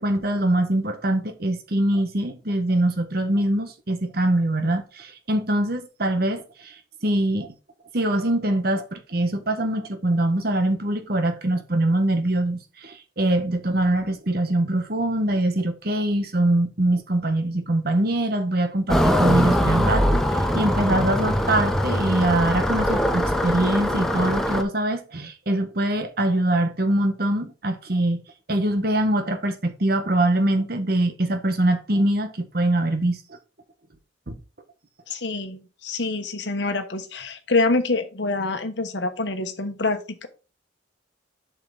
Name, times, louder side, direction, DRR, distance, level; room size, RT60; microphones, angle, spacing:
voice 1, 0.0-7.5 7.9-20.2 20.5-28.2 28.5-33.2 34.3-34.4, right 1 dB, 55° right, 1.2 m, -23 dB
sound 1, 18.9-24.6, equal, ahead, 0.8 m, -22 dB
voice 2, 35.1-40.3, left 3 dB, 70° left, 1.2 m, -26 dB
7.5 x 5.9 x 4.0 m
head